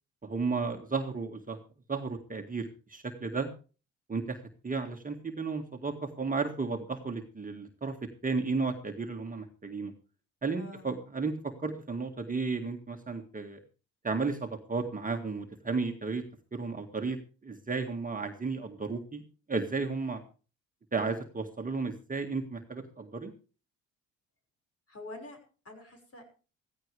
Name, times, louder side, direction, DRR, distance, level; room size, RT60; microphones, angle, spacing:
voice 1, 0.2-1.6 1.9-3.5 4.1-4.4 4.6-8.0 8.2-9.9 10.4-13.6 14.0-16.2 16.5-17.2 17.4-19.2 19.5-20.2 20.9-23.3, right 4 dB, 20° right, 3 dB, 1.9 m, -33 dB
voice 2, 10.5-10.9 24.9-26.2, left 2 dB, 40° left, 5 dB, 5.9 m, -46 dB
15.5 x 15.0 x 3.4 m, 0.36 s
hypercardioid pair, 55°, 38 cm